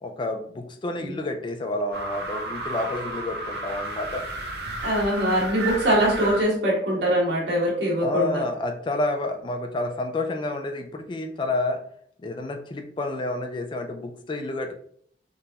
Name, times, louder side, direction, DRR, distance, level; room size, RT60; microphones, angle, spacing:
voice 1, 0.0-4.2 8.0-11.8 12.2-14.8, left 2 dB, 25° left, 5 dB, 0.3 m, -29 dB
sound 1, 1.9-6.4, right 2 dB, 60° right, 0.5 m, -32 dB
voice 2, 4.8-8.4, right 1 dB, 85° right, -4 dB, 1.4 m, -23 dB
3.7 x 2.5 x 2.8 m, 0.62 s
head